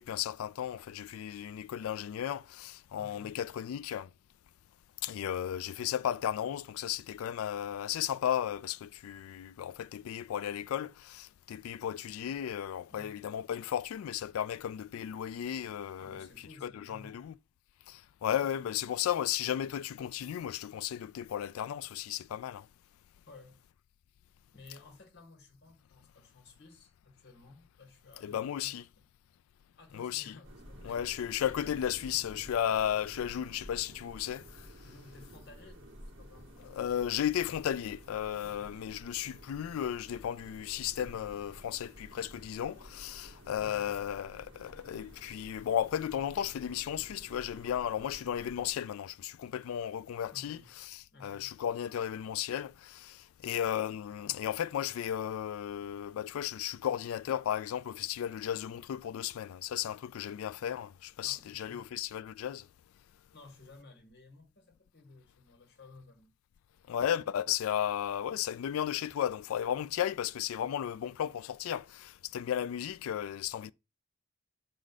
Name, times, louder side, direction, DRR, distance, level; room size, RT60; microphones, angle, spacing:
voice 1, 0.0-4.1 5.0-16.3 16.6-17.3 17.9-22.7 28.2-28.8 29.9-30.3 30.8-34.7 36.7-50.6 51.2-62.7 66.9-73.7, left 10 dB, 90° left, 0.3 m, -34 dB
voice 2, 3.0-3.4 12.9-13.2 16.0-17.3 18.4-18.8 23.3-23.6 24.5-29.0 29.8-31.0 34.8-36.9 38.4-38.9 43.6-44.0 50.3-50.7 51.1-51.6 61.2-61.9 63.3-66.3, left 3 dB, 50° left, 1.6 m, -55 dB
sound 1, 30.4-48.7, equal, 65° right, 2.1 m, -52 dB
6.4 x 4.7 x 4.0 m
head